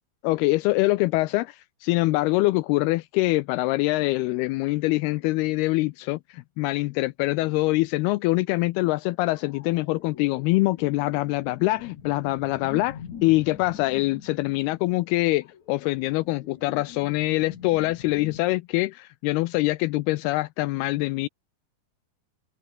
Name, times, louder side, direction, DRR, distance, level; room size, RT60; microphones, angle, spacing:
voice 1, 0.2-21.3, left 20 dB, 80° left, 2.5 m, -24 dB
sound 1, 9.3-18.4, left 8 dB, 50° left, 3.3 m, -44 dB
omnidirectional pair, 4.6 m